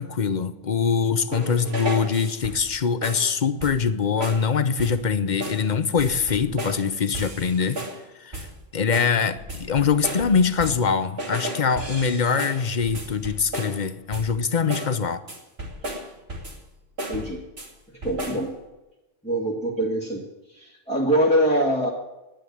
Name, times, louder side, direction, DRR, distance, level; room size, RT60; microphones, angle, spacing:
voice 1, 0.0-7.8 8.2-8.5 8.7-15.2, left 6 dB, 45° left, 12 dB, 0.9 m, -23 dB
sound 1, 1.3-2.7 3.0-3.3 3.6-3.9 4.2-4.5 4.8-5.1 5.4-5.7 6.0-6.9 7.1-8.0 8.3-8.6 8.9-10.9 11.2-13.8 14.1-14.4 14.7-15.0 15.3-16.7 17.0-17.7 18.0-18.5, right 1 dB, 75° right, 2.9 m, -34 dB
voice 2, 17.1-17.4 18.0-18.5 19.2-20.2 20.5-21.9, equal, 5° left, -3 dB, 1.9 m, -23 dB
10.5 x 10.0 x 9.3 m, 1.0 s
omnidirectional pair, 1.1 m